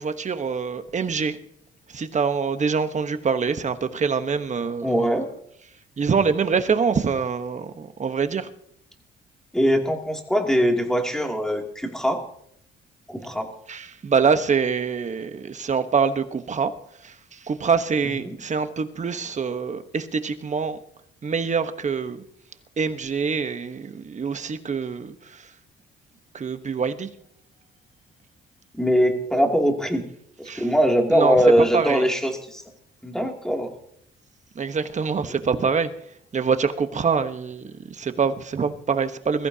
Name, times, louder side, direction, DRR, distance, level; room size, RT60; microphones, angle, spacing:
voice 1, 0.0-1.4 1.9-5.2 6.0-8.5 13.7-20.8 21.2-22.2 22.8-25.5 26.3-27.1 30.5-30.7 31.1-32.0 34.5-39.5, right 5 dB, 35° right, 9 dB, 1.1 m, -25 dB
voice 2, 4.8-5.2 9.5-12.2 13.1-13.5 18.2-18.3 28.7-30.0 30.4-32.6 33.0-33.7, equal, 5° left, 2 dB, 2.7 m, -21 dB
21.5 x 14.5 x 2.8 m, 0.73 s
cardioid pair, 90°, 20 cm